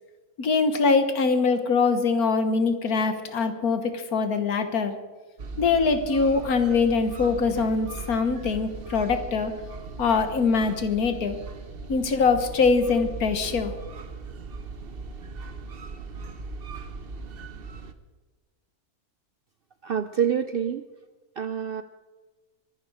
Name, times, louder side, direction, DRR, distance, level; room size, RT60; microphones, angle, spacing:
voice 1, 0.4-5.0 5.6-9.5 10.0-11.4 11.9-13.7, left 4 dB, 80° left, 9 dB, 1.8 m, -23 dB
sound 1, 5.4-17.9, right 4 dB, 45° right, 1.0 m, -39 dB
voice 2, 19.8-20.8 21.4-21.8, right 8 dB, 60° right, 11 dB, 0.6 m, -26 dB
23.5 x 11.0 x 4.9 m, 1.3 s
omnidirectional pair, 1.5 m